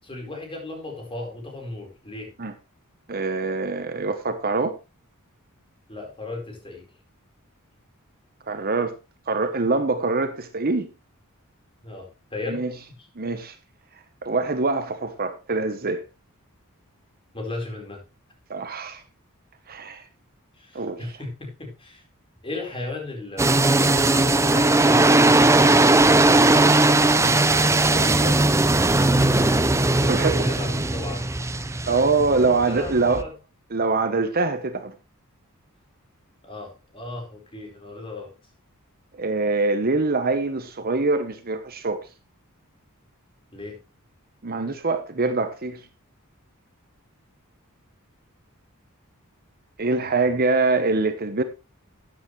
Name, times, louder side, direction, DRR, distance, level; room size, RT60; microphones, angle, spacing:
voice 1, 0.0-2.3 5.9-6.9 11.8-12.6 17.3-18.0 20.6-22.0 22.4-25.2 29.7-31.3 31.8-33.3 36.4-38.3 43.5-43.8 50.0-50.3, left 2 dB, 25° left, 4.4 m, -36 dB
voice 2, 3.1-4.8 8.5-9.0 9.3-10.9 12.5-12.7 13.2-13.6 14.2-16.0 18.5-19.0 19.7-20.0 20.7-21.1 26.6-28.4 30.0-30.5 31.9-33.3 33.7-34.9 39.1-42.1 44.4-45.8 49.8-51.4, right 3 dB, 45° right, 1.0 m, -24 dB
sound 1, 23.4-33.2, right 2 dB, 15° right, 0.6 m, -18 dB
13.5 x 9.2 x 3.2 m
head